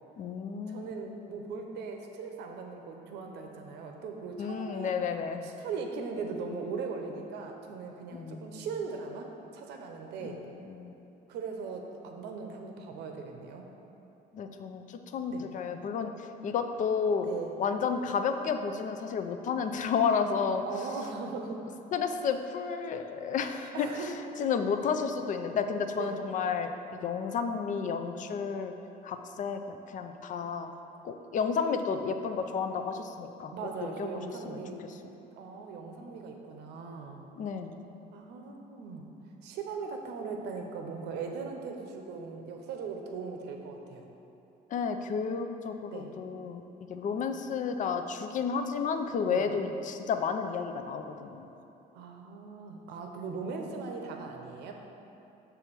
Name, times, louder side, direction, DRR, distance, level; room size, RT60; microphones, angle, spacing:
voice 1, 0.2-0.9 4.4-5.5 8.1-8.7 10.2-10.9 14.3-17.3 17.6-20.6 21.9-24.1 24.4-26.7 27.0-28.7 29.0-30.7 31.0-33.5 34.0-34.6 37.4-37.8 44.7-46.6 46.9-51.5, left 6 dB, 50° left, 7 dB, 0.5 m, -32 dB
voice 2, 0.7-4.9 5.4-10.4 11.3-13.7 15.3-15.5 17.2-17.5 20.7-21.6 23.7-24.2 26.0-26.2 33.5-34.8 35.3-37.3 38.1-39.1 39.4-44.1 45.9-46.1 49.2-49.5 51.9-54.7, right 4 dB, 85° right, 3 dB, 0.7 m, -39 dB
7.0 x 3.4 x 6.0 m, 2.9 s
cardioid pair, 110°, 17 cm